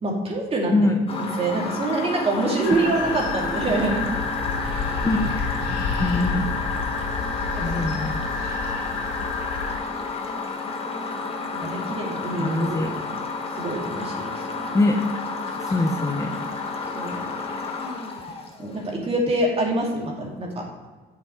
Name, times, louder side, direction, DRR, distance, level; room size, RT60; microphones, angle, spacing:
voice 1, 0.0-0.9 1.2-4.1 7.5-7.9 11.6-13.1 13.6-14.3 16.9-17.3 18.6-20.6, right 2 dB, 35° right, -1 dB, 2.5 m, -26 dB
sound 1, 1.1-19.0, left 3 dB, 35° left, 1.4 m, -31 dB
sound 2, 2.6-9.8, left 4 dB, 85° left, 2.4 m, -29 dB
voice 2, 5.0-6.5 7.6-8.1 11.6-11.9 12.3-12.9 14.7-15.0 15.6-16.4, left 2 dB, 20° left, 4 dB, 0.8 m, -24 dB
8.3 x 7.2 x 4.4 m, 1.3 s
cardioid pair, 110°, 17 cm